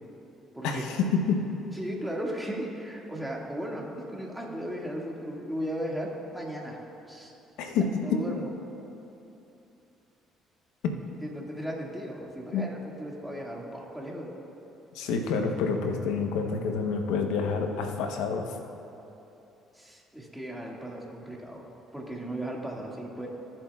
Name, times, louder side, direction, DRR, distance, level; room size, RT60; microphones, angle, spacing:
voice 1, 0.6-1.4 7.6-7.8 8.1-8.2 12.5-12.6 14.9-18.6, left 5 dB, 85° left, 4 dB, 0.9 m, -28 dB
voice 2, 1.7-6.8 7.1-7.3 8.0-8.5 11.2-14.3 19.7-21.7 21.9-23.3, equal, 5° right, -3 dB, 2.0 m, -36 dB
21.0 x 7.4 x 2.4 m, 2.9 s
supercardioid pair, 80°, 0 cm